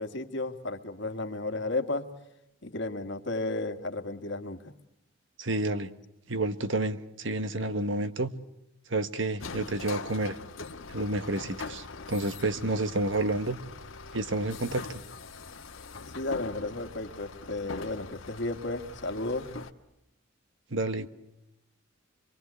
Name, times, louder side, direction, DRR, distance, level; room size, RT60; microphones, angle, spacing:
voice 1, 0.0-2.1 2.6-4.7 16.1-19.6, left 2 dB, 60° left, 6 dB, 1.8 m, -33 dB
voice 2, 5.4-5.9 6.3-8.3 8.9-10.4 10.9-13.6 14.1-15.0 20.7-21.1, right 2 dB, 65° right, 11 dB, 1.3 m, -30 dB
sound 1, 9.4-19.7, left 4 dB, 75° left, 1.4 m, -42 dB
26.0 x 24.0 x 8.3 m, 0.86 s
head